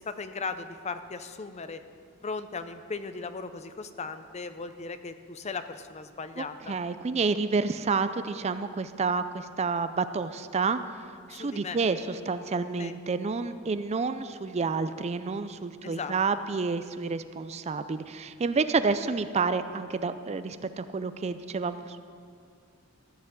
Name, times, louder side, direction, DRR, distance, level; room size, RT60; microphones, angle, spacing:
voice 1, 0.0-1.8 2.2-6.8 11.3-11.8 12.8-13.0 15.8-16.1, left 4 dB, 30° left, 10 dB, 0.6 m, -37 dB
voice 2, 6.7-10.8 11.3-22.0, right 4 dB, 30° right, 11 dB, 0.4 m, -29 dB
14.5 x 6.7 x 8.6 m, 2.3 s
head